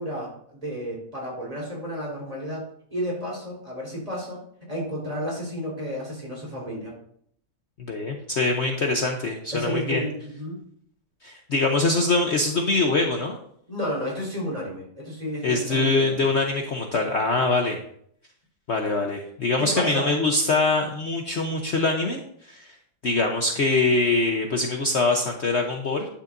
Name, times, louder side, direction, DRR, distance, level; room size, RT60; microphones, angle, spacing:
voice 1, 0.0-4.4 4.7-6.9 9.5-10.6 13.7-16.3 19.6-20.1, equal, 20° right, -4 dB, 4.2 m, -32 dB
voice 2, 7.8-10.0 11.2-13.4 15.4-17.8 18.7-22.7 23.0-26.1, left 3 dB, 50° left, 2 dB, 1.1 m, -23 dB
11.5 x 9.9 x 2.6 m, 0.66 s
omnidirectional pair, 1.7 m